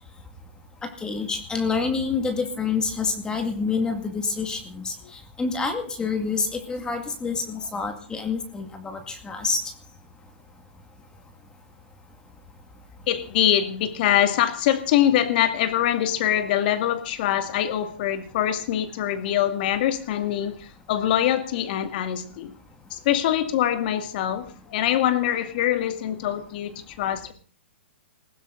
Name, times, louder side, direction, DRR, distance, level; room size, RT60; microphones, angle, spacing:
voice 1, 0.8-9.6, left 4 dB, 15° left, 2.2 m, -27 dB
voice 2, 13.1-22.5 22.9-27.3, left 11 dB, 50° left, 2.3 m, -24 dB
20.0 x 15.5 x 4.0 m
hypercardioid pair, 130°, 6 cm